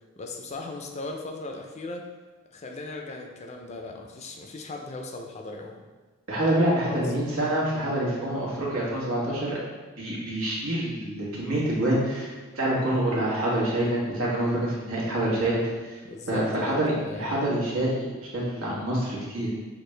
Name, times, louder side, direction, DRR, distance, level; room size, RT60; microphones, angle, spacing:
voice 1, 0.2-2.1 2.5-5.8 6.9-7.0 16.0-17.4, left 2 dB, 30° left, 3 dB, 0.4 m, -37 dB
voice 2, 6.3-9.6 10.0-16.0 16.3-18.1 18.3-19.5, right 1 dB, 80° right, -6 dB, 1.5 m, -26 dB
6.3 x 2.5 x 3.2 m, 1.3 s
head